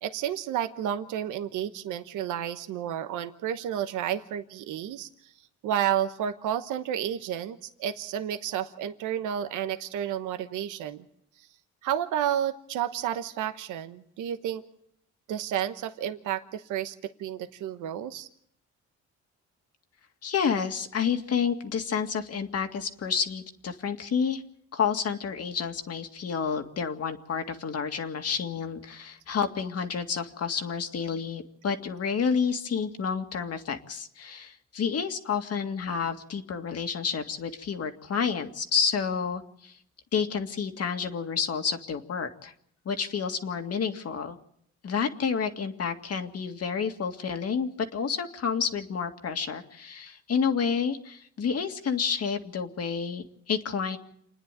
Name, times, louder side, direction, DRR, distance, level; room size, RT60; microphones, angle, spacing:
voice 1, 0.0-5.3 5.6-11.0 11.8-14.6 15.3-18.3, right 10 dB, 90° right, 9 dB, 1.2 m, -31 dB
voice 2, 20.2-24.4 24.7-39.8 40.1-42.5 42.9-44.4 44.8-54.0, left 6 dB, 55° left, 6 dB, 2.1 m, -29 dB
28.5 x 10.0 x 9.1 m, 0.70 s
cardioid pair, 90°, 30 cm